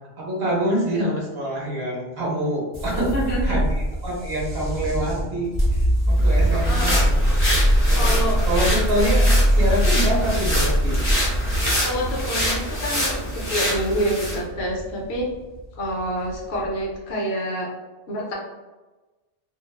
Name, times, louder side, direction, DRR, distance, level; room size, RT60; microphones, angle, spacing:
voice 1, 0.2-3.1 3.4-7.2 7.9-11.0, right 1 dB, 65° right, -4 dB, 1.0 m, -26 dB
sound 1, 2.7-16.9, equal, 30° right, 0.7 m, -22 dB
voice 2, 2.9-3.6 6.5-7.0 7.9-8.4 11.8-15.3 15.8-17.7 18.1-18.3, equal, 65° left, -2 dB, 0.8 m, -27 dB
sound 2, 6.2-14.4, left 1 dB, 15° left, 0.6 m, -27 dB
2.4 x 2.2 x 2.2 m, 1.2 s
omnidirectional pair, 1.2 m